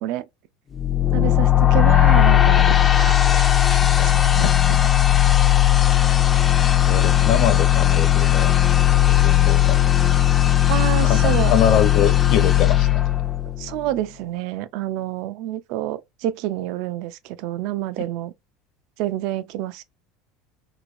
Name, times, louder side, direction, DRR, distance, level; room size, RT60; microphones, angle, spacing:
sound 1, 0.8-13.8, left 12 dB, 20° left, 0.3 m, -17 dB
voice 1, 1.1-5.3 10.7-11.6 13.6-18.3 19.0-19.8, right 14 dB, 60° right, 0.3 m, -28 dB
voice 2, 6.9-8.7 9.1-9.9 11.0-13.0, left 8 dB, 55° left, 0.6 m, -24 dB
3.0 x 3.0 x 2.5 m
supercardioid pair, 140°, 0 cm